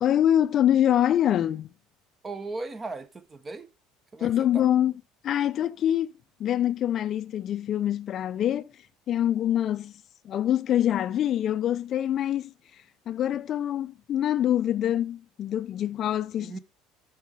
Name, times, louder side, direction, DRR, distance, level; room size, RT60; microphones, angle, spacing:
voice 1, 0.0-1.7 4.2-4.9 5.2-6.1 6.4-8.7 9.1-9.9 10.2-12.5 13.1-16.6, left 11 dB, 50° left, 0.4 m, -25 dB
voice 2, 2.2-3.7 4.1-4.7 16.4-16.6, right 3 dB, 25° right, 0.8 m, -37 dB
10.0 x 4.6 x 4.7 m
hypercardioid pair, 80°, 0 cm